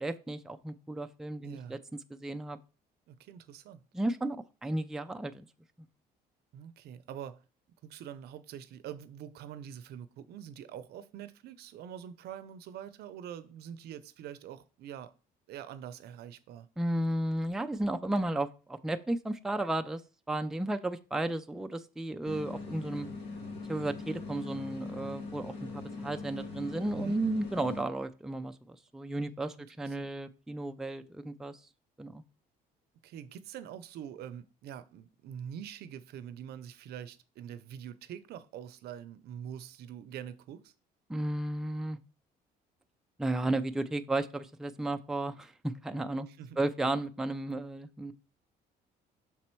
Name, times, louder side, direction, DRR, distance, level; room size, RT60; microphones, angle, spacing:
voice 1, 0.0-1.8 2.1-2.6 3.9-5.5 16.8-20.0 20.3-23.1 23.7-31.6 32.0-32.2 41.1-42.0 43.2-46.3 46.6-48.1, right 1 dB, 5° right, 0.4 m, -33 dB
voice 2, 1.4-1.8 3.1-3.8 6.5-7.4 7.8-15.1 15.5-16.7 26.9-27.2 29.2-30.2 33.0-40.7 46.3-46.6, right 9 dB, 70° right, 0.6 m, -45 dB
sound 1, 22.2-27.8, left 3 dB, 80° left, 2.1 m, -41 dB
6.0 x 4.2 x 4.5 m
cardioid pair, 110°, 17 cm